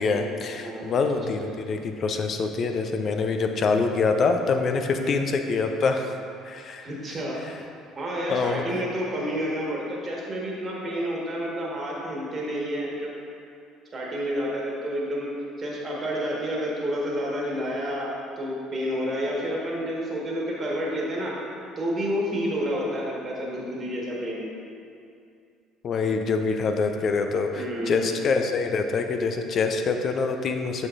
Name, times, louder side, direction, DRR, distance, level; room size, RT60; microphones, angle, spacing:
voice 1, 0.0-6.1 6.4-6.9 8.3-8.8 25.8-30.9, left 4 dB, 45° left, 5 dB, 0.5 m, -25 dB
voice 2, 0.6-1.5 4.9-5.1 6.8-7.4 8.0-13.1 13.9-15.3 15.6-21.3 21.8-24.4 27.5-28.1, equal, 35° right, -3 dB, 1.5 m, -30 dB
8.1 x 6.5 x 2.6 m, 2.4 s
figure-of-eight pair, 55°, 0 cm